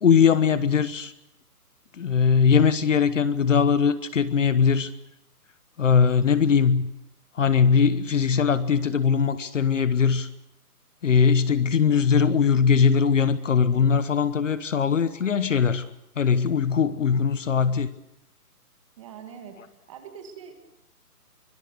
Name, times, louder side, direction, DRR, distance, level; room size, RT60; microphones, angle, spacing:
voice 1, 0.0-1.1 2.0-4.9 5.8-6.9 7.3-10.3 11.0-15.9 16.2-17.9, left 6 dB, 50° left, 14 dB, 1.1 m, -20 dB
voice 2, 19.0-20.6, right 7 dB, 20° right, 6 dB, 1.7 m, -43 dB
24.5 x 23.5 x 6.8 m, 0.87 s
hypercardioid pair, 170°, 47 cm